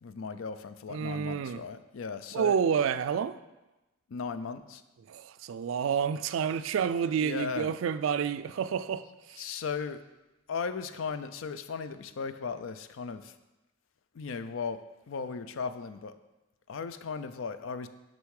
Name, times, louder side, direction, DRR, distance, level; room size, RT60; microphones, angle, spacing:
voice 1, 0.0-2.6 4.1-4.8 7.2-7.7 9.4-10.0 10.5-13.3 14.1-14.8 15.1-16.1 16.7-17.9, left 5 dB, 90° left, 0.4 m, -36 dB
voice 2, 0.9-1.6 2.3-3.4 5.1-9.6, right 7 dB, 90° right, 0.3 m, -29 dB
6.8 x 5.3 x 4.8 m
head